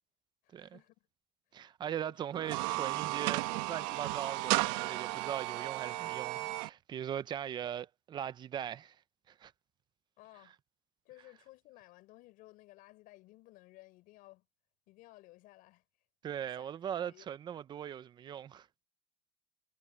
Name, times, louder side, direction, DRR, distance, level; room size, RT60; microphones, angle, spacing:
voice 1, 0.4-1.1 1.5-2.2 10.2-10.6 11.0-14.5 14.9-15.8 16.5-16.7 17.0-17.3, left 19 dB, 55° left, 6.0 m, -57 dB
voice 2, 1.5-9.0 9.3-9.5 16.2-18.7, right 9 dB, 25° right, 0.6 m, -40 dB
sound 1, 2.3-6.7, right 20 dB, 80° right, 1.1 m, -34 dB
cardioid pair, 160°, 17 cm